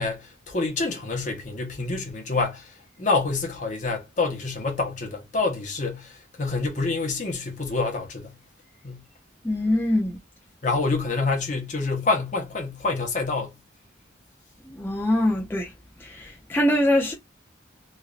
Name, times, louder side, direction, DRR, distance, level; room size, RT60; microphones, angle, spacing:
voice 1, 0.0-8.3 8.8-9.0 10.6-13.6, left 3 dB, 40° left, 0.9 m, -27 dB
voice 2, 9.4-10.2 14.6-15.7 16.0-17.1, left 1 dB, 10° left, 0.4 m, -23 dB
3.1 x 2.5 x 2.4 m
head